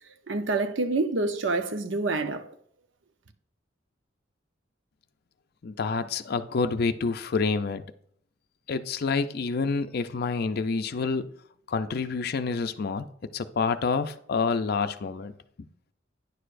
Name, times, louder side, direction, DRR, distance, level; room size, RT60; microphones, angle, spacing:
voice 1, 0.3-2.5, right 3 dB, 90° right, 0.7 m, -27 dB
voice 2, 5.6-7.8 8.7-11.3 11.7-13.1 13.3-15.3, left 4 dB, 55° left, 0.5 m, -28 dB
9.7 x 6.5 x 2.5 m
head